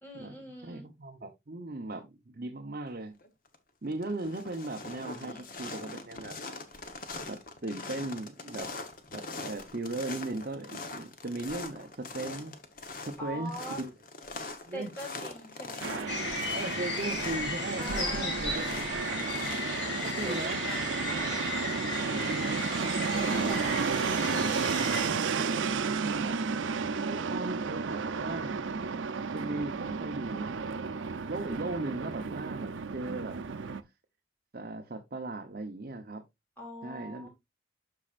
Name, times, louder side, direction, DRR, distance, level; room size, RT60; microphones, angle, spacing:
voice 1, 0.0-0.9 5.2-5.6 13.2-13.8 14.7-16.1 17.8-19.3 20.2-20.9 23.1-23.9 36.6-37.3, right 1 dB, 10° left, 3.3 m, -43 dB
voice 2, 0.6-3.2 3.8-6.4 7.3-8.7 9.1-12.6 13.0-13.9 14.7-14.9 16.5-18.6 20.0-20.6 21.0-21.2 21.8-24.0 25.2-26.8 27.0-28.6 29.3-30.8 31.3-33.4 34.5-36.2 36.8-37.3, right 2 dB, 50° right, 0.8 m, -38 dB
sound 1, 3.2-3.6 3.9-21.7, left 3 dB, 45° left, 1.1 m, -43 dB
Fixed-wing aircraft airplane, 15.8-33.8, right 5 dB, 80° right, 0.6 m, -32 dB
sound 2, 16.1-25.1, left 3 dB, 60° left, 2.5 m, -35 dB
12.5 x 4.3 x 2.5 m
head